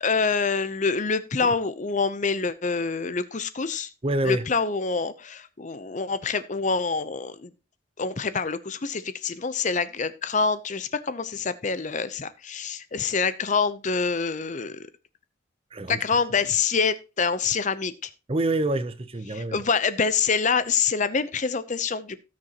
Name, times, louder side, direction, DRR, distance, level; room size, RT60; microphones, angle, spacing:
voice 1, 0.0-3.9 4.2-7.5 8.0-14.9 15.9-18.1 19.3-22.2, left 5 dB, 40° left, 0.7 m, -26 dB
voice 2, 4.0-4.5 15.7-16.0 18.3-19.6, right 2 dB, 30° right, 0.7 m, -27 dB
17.5 x 6.3 x 2.9 m
head